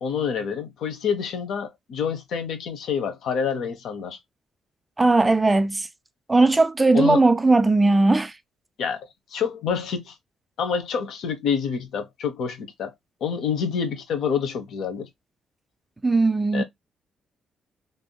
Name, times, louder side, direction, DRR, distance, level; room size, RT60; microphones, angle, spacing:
voice 1, 0.0-4.2 6.9-7.2 8.8-10.1 10.6-12.9 13.2-15.1 16.5-16.6, left 6 dB, 75° left, 0.9 m, -27 dB
voice 2, 5.0-5.9 6.3-8.3 16.0-16.6, right 3 dB, 20° right, 0.4 m, -18 dB
3.5 x 2.6 x 2.2 m
cardioid pair, 90°, 0 cm